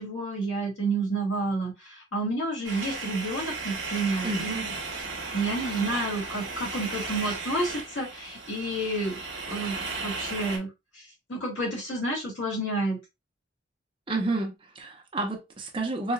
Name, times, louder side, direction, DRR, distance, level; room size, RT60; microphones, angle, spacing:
voice 1, 0.0-4.5 5.3-9.2 9.5-10.7 10.9-13.0, right 2 dB, 75° left, 1.8 m, -30 dB
sound 1, 2.6-10.6, right 3 dB, 65° right, 1.3 m, -35 dB
voice 2, 4.2-4.7 14.1-16.1, right 2 dB, 25° right, 0.8 m, -30 dB
4.3 x 2.3 x 2.3 m
head